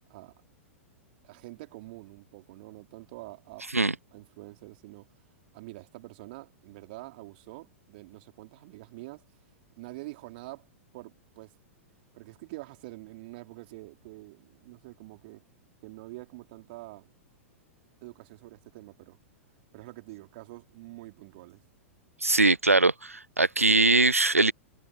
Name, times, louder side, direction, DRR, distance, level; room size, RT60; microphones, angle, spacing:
voice 1, 1.2-3.7 4.1-5.1 5.5-9.2 9.7-10.7 10.9-11.6 12.1-15.4 15.8-17.1 18.0-19.2 19.7-21.6, right 21 dB, 45° right, 4.3 m, -46 dB
voice 2, 22.2-24.5, right 2 dB, 85° right, 1.0 m, -22 dB
figure-of-eight pair, 100°, 7 cm